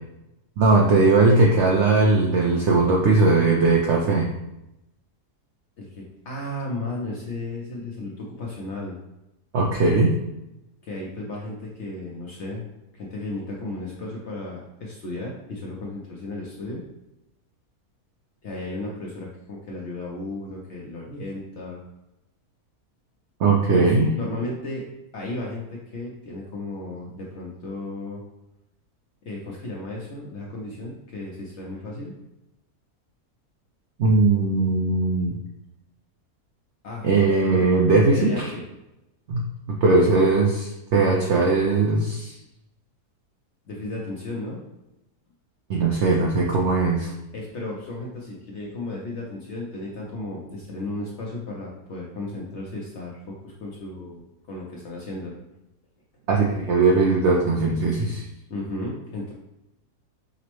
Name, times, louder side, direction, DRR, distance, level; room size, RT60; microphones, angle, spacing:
voice 1, 0.6-4.3 9.5-10.1 23.4-24.1 34.0-35.3 37.0-38.5 39.3-42.3 45.7-47.1 56.3-58.2, right 3 dB, 75° right, -1 dB, 0.6 m, -19 dB
voice 2, 5.8-9.0 10.8-12.6 12.9-16.8 18.4-21.8 23.7-24.8 25.1-28.2 29.2-32.2 36.8-37.7 38.1-38.6 43.7-44.6 47.3-55.4 58.5-59.3, left 2 dB, 65° left, -3 dB, 0.7 m, -34 dB
5.0 x 2.0 x 3.0 m, 0.92 s
omnidirectional pair, 1.7 m